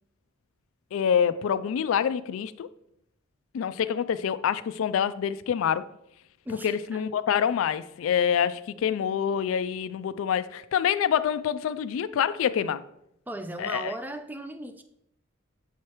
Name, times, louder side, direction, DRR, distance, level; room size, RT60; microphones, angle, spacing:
voice 1, 0.9-2.7 3.5-5.9 6.5-12.8 13.6-13.9, left 8 dB, 80° left, 0.3 m, -26 dB
voice 2, 6.4-7.0 12.6-12.7 13.3-14.8, right 1 dB, 10° right, 0.3 m, -37 dB
7.3 x 4.7 x 2.9 m
head